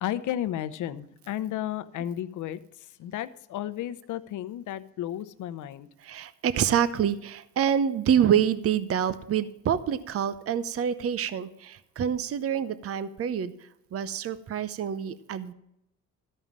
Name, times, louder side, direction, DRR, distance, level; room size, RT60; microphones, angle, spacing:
voice 1, 0.0-2.6 3.0-5.9, left 12 dB, 80° left, 12 dB, 0.8 m, -33 dB
voice 2, 6.0-13.5 13.9-15.5, right 8 dB, 50° right, 15 dB, 0.7 m, -27 dB
13.5 x 5.4 x 7.4 m, 0.81 s
cardioid pair, 90°, 30 cm